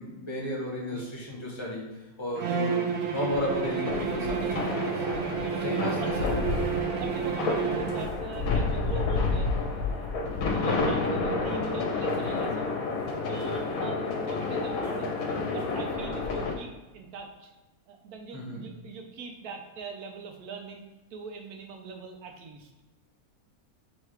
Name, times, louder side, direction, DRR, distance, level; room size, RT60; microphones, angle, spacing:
voice 1, 0.0-1.9 2.2-2.9 3.1-5.0 5.6-6.4 8.4-8.5 18.3-18.6, left 1 dB, 20° left, -3 dB, 1.1 m, -33 dB
Bowed string instrument, 2.4-8.2, right 6 dB, 55° right, 0.8 m, -30 dB
sound 1, 3.3-16.5, left 3 dB, 70° left, 1.1 m, -30 dB
voice 2, 5.4-6.1 6.9-9.5 9.9-12.7 13.3-15.1 15.5-17.5 17.9-20.8 21.1-22.7, right 4 dB, 90° right, 3 dB, 1.2 m, -41 dB
4.7 x 3.3 x 3.2 m, 1.1 s
omnidirectional pair, 1.5 m